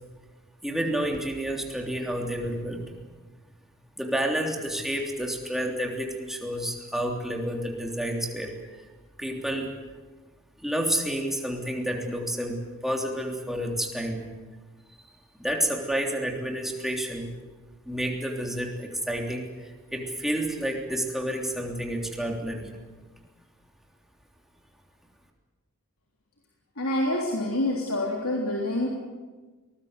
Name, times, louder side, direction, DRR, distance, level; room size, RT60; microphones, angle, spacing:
voice 1, 0.6-2.8 4.0-8.5 9.2-9.7 10.6-14.3 15.4-17.3 17.9-19.4 19.9-22.7, right 1 dB, ahead, 1 dB, 3.3 m, -29 dB
voice 2, 26.8-28.9, left 1 dB, 85° left, -1 dB, 3.6 m, -27 dB
23.5 x 20.0 x 8.1 m, 1.3 s
head